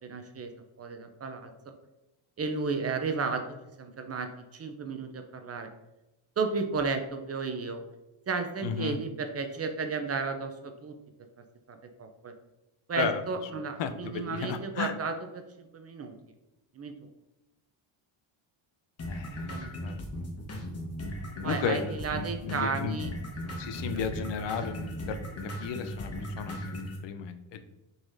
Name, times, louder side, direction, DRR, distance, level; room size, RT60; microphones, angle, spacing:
voice 1, 0.1-0.5 0.8-1.5 2.4-3.4 3.8-5.7 6.4-7.8 8.3-10.9 11.7-12.3 12.9-16.1 16.8-16.9 19.3-19.8 21.4-23.1 23.7-23.8, right 4 dB, 35° right, 6 dB, 0.5 m, -33 dB
voice 2, 8.6-9.0 13.0-13.2 13.5-14.9 19.1-19.5 19.8-20.0 21.4-21.8 22.1-23.0 23.5-25.2 25.6-27.6, left 6 dB, 65° left, 9 dB, 0.6 m, -34 dB
sound 1, 19.0-27.0, left 1 dB, 30° left, 1.0 m, -37 dB
4.6 x 4.0 x 2.6 m, 0.99 s
cardioid pair, 100°, 46 cm